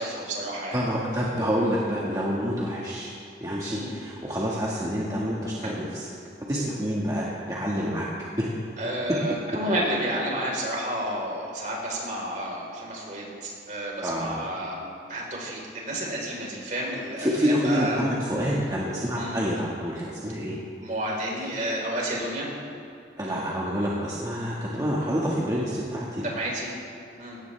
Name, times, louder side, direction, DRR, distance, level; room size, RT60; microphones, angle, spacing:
voice 1, 0.0-0.8 3.7-3.9 5.6-5.9 8.8-18.0 19.2-19.4 20.8-22.5 26.2-26.7 27.2-27.4, right 1 dB, 45° right, -3 dB, 4.4 m, -31 dB
voice 2, 0.7-3.1 3.4-6.1 6.5-8.1 8.4-8.6 9.1-9.2 14.0-14.4 17.2-20.6 23.2-26.2, equal, 20° right, -6 dB, 1.9 m, -27 dB
21.5 x 18.0 x 3.5 m, 2.7 s
head